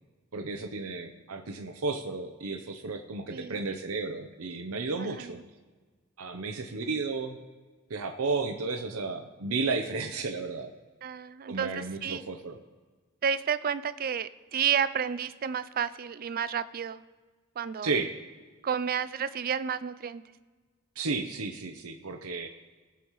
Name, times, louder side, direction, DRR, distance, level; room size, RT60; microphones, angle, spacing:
voice 1, 0.3-5.4 6.2-7.4 7.9-10.7 11.5-12.6 17.8-18.2 21.0-22.5, right 3 dB, 75° right, 6 dB, 0.7 m, -33 dB
voice 2, 11.0-12.2 13.2-17.0 17.6-17.9 18.6-20.2, right 7 dB, 45° right, 15 dB, 0.4 m, -31 dB
18.0 x 7.1 x 3.1 m, 1.4 s
head